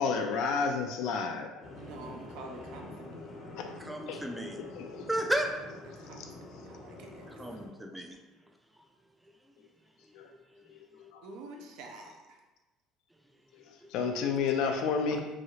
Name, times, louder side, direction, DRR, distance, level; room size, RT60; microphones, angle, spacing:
voice 1, 0.0-1.5 3.6-3.7 4.1-4.2 4.6-5.1 6.2-6.3 10.1-10.3 10.7-11.2 13.5-15.3, left 5 dB, 70° left, 4 dB, 0.4 m, -31 dB
sound 1, 1.6-7.7, left 2 dB, 35° left, 0.7 m, -46 dB
voice 2, 1.7-3.4 6.0-7.6 11.2-12.4, right 3 dB, 75° right, 2 dB, 0.5 m, -48 dB
voice 3, 3.8-4.6 5.1-5.5 7.4-8.2, right 1 dB, 5° right, 3 dB, 0.3 m, -33 dB
3.1 x 2.4 x 2.7 m, 1.1 s
cardioid pair, 130°, 0 cm